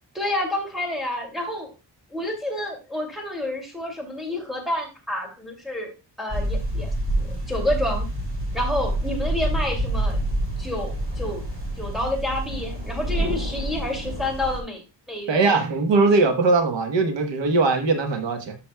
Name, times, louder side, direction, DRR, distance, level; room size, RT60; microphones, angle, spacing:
voice 1, 0.1-1.7 2.1-5.9 6.2-6.9 7.2-8.0 8.5-10.2 10.6-11.4 11.8-14.8 15.1-15.6, left 1 dB, ahead, 2.5 m, -29 dB
sound 1, 6.3-14.6, right 1 dB, 30° right, 2.5 m, -27 dB
voice 2, 15.3-18.6, right 3 dB, 85° right, 1.3 m, -20 dB
12.0 x 6.1 x 2.3 m
wide cardioid pair, 140°, 43 cm